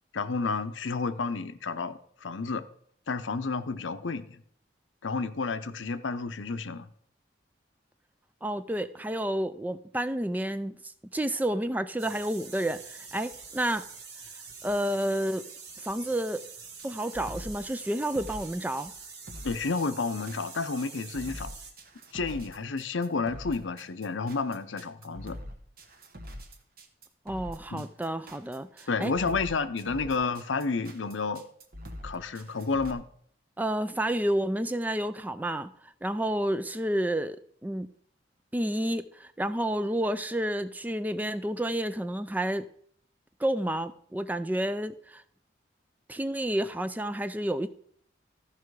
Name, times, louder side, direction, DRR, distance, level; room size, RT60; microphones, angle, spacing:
voice 1, 0.1-2.6 3.1-4.4 5.0-6.9 19.4-21.5 22.1-25.4 27.7-27.9 28.9-31.4 32.0-33.0, left 4 dB, 90° left, 11 dB, 0.7 m, -31 dB
voice 2, 8.4-13.8 14.6-15.5 15.8-16.4 16.8-18.9 27.3-29.1 33.6-37.9 38.5-42.7 43.4-45.2 46.1-47.7, right 1 dB, 10° right, 12 dB, 0.3 m, -30 dB
sound 1, 12.0-21.7, right 5 dB, 70° right, 2.0 m, -46 dB
sound 2, 16.8-32.9, equal, 50° right, 1.2 m, -44 dB
14.0 x 5.7 x 4.7 m, 0.63 s
head